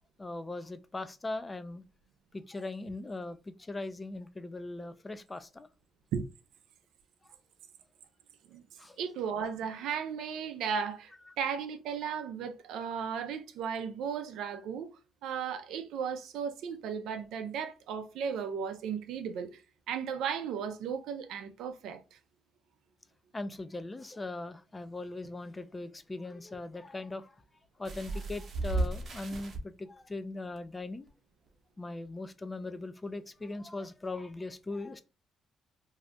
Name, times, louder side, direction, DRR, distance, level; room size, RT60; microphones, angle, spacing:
voice 1, 0.2-1.8 2.3-5.7 8.8-9.0 23.3-27.3 27.8-31.1 31.8-35.0, left 2 dB, 20° left, 0.4 m, -40 dB
voice 2, 9.0-14.9 15.2-19.6 19.9-22.2, right 7 dB, 85° right, 0.5 m, -35 dB
sound 1, 27.8-29.6 30.6-30.7 31.1-31.2, right 2 dB, 50° right, 0.8 m, -34 dB
2.7 x 2.4 x 3.2 m
cardioid pair, 90°, 0 cm